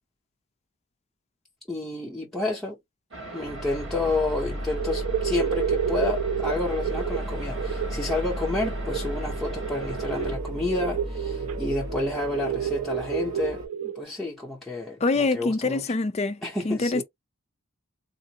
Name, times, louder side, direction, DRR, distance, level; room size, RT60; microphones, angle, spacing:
voice 1, 1.7-2.8 3.3-15.8 16.4-17.0, left 2 dB, ahead, 0.7 m, -30 dB
sound 1, 3.1-10.4, right 2 dB, 70° right, 1.3 m, -40 dB
sound 2, 3.4-13.7, equal, 40° right, 1.6 m, -35 dB
sound 3, 4.2-4.4 4.7-14.0, right 9 dB, 90° right, 0.4 m, -31 dB
voice 2, 15.0-16.4 16.6-17.0, left 3 dB, 30° left, 0.4 m, -24 dB
3.7 x 2.0 x 2.7 m
head